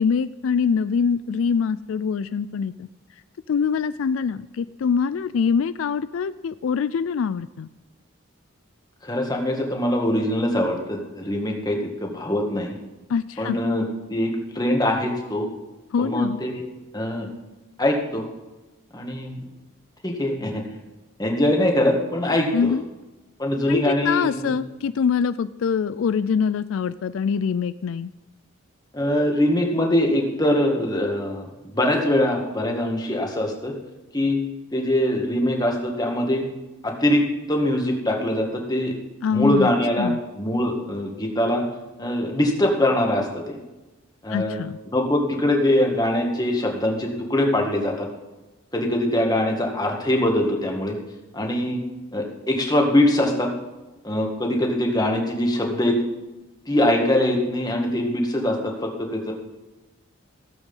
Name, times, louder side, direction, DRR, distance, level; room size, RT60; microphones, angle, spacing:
voice 1, 0.0-2.9 3.5-7.7 13.1-13.6 15.9-16.4 22.5-22.8 23.7-28.1 39.2-39.7 40.0-40.2 44.3-44.8, left 6 dB, 70° left, 14 dB, 0.3 m, -24 dB
voice 2, 9.0-12.8 13.4-15.5 16.0-16.6 16.9-17.3 17.8-18.3 18.9-19.4 20.0-20.6 21.2-22.7 23.4-24.5 28.9-31.5 31.7-33.7 34.1-34.4 34.7-36.5 36.8-38.9 39.3-41.6 42.0-43.6 44.2-44.6 44.9-48.1 48.7-51.0 51.3-51.8 52.1-53.5 54.0-56.0 56.7-59.3, left 1 dB, 20° left, 1 dB, 1.8 m, -22 dB
16.0 x 8.1 x 5.5 m, 1.1 s
head